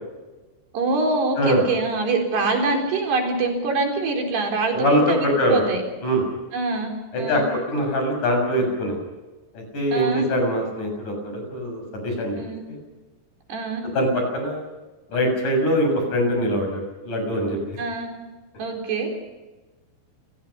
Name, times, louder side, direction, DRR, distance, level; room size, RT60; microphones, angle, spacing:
voice 1, 0.7-5.8 6.5-7.5 9.9-10.3 12.4-12.6 13.5-13.9 17.8-18.1 18.6-19.1, right 3 dB, 85° right, 2 dB, 6.2 m, -24 dB
voice 2, 4.8-5.6 6.0-6.2 7.1-7.4 7.7-9.0 9.5-12.4 12.7-12.8 13.9-14.6 15.1-17.6, equal, 50° left, 3 dB, 8.3 m, -23 dB
29.5 x 18.5 x 5.8 m, 1.2 s
omnidirectional pair, 4.6 m